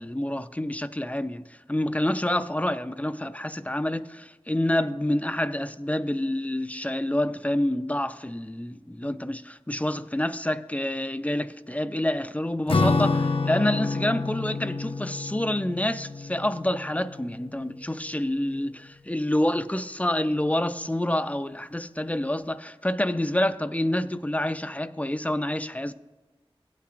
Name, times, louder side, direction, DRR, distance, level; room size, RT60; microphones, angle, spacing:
voice 1, 0.0-25.9, left 1 dB, 15° left, 0.5 m, -28 dB
Acoustic guitar / Strum, 12.7-17.5, left 3 dB, 65° left, 0.6 m, -28 dB
16.0 x 8.5 x 2.5 m
wide cardioid pair, 40°, 10 cm